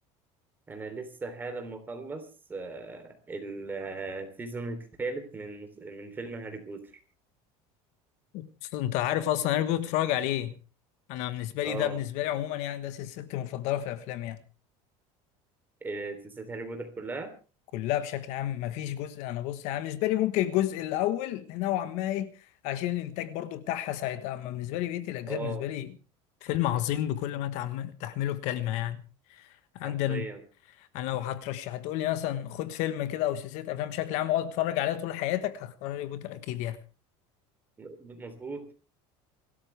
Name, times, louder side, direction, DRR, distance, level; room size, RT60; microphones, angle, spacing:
voice 1, 0.7-6.8 11.6-12.0 15.8-17.3 25.3-25.7 29.8-30.4 37.8-38.8, right 3 dB, 15° right, 3.3 m, -38 dB
voice 2, 8.3-10.5 11.1-14.4 17.7-22.3 22.6-25.9 26.4-29.0 29.3-29.5 29.8-30.3 30.9-36.8, left 13 dB, 60° left, 1.3 m, -30 dB
28.0 x 13.0 x 3.4 m
cardioid pair, 160°, 13 cm